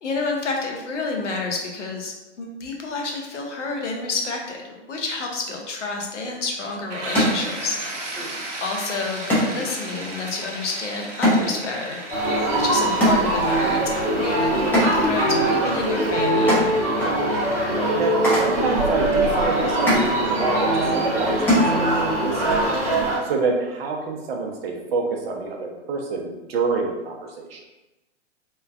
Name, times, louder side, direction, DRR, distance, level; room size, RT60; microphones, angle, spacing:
voice 1, 0.0-7.8 8.6-12.2 12.5-16.7, left 3 dB, 80° left, 0 dB, 0.8 m, -29 dB
sound 1, 6.2-22.3, equal, 5° left, 0.6 m, -27 dB
sound 2, 6.9-22.5, right 2 dB, 90° right, 0.7 m, -37 dB
sound 3, 12.1-23.2, right 1 dB, 20° right, 1.3 m, -22 dB
voice 2, 17.0-22.6 22.9-27.6, right 4 dB, 55° right, 1 dB, 0.6 m, -28 dB
3.1 x 2.1 x 2.3 m, 1.0 s
hypercardioid pair, 125°, 36 cm